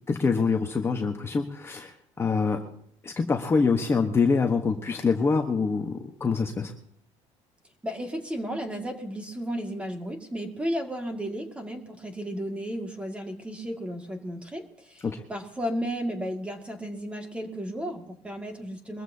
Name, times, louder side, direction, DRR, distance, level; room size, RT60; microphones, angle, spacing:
voice 1, 0.1-2.6 3.0-6.7 15.0-15.2, left 4 dB, 20° left, 3 dB, 1.1 m, -25 dB
voice 2, 7.8-15.0 15.3-19.0, equal, 10° right, 4 dB, 2.1 m, -33 dB
23.0 x 14.0 x 2.8 m, 0.67 s
cardioid pair, 150°, 12 cm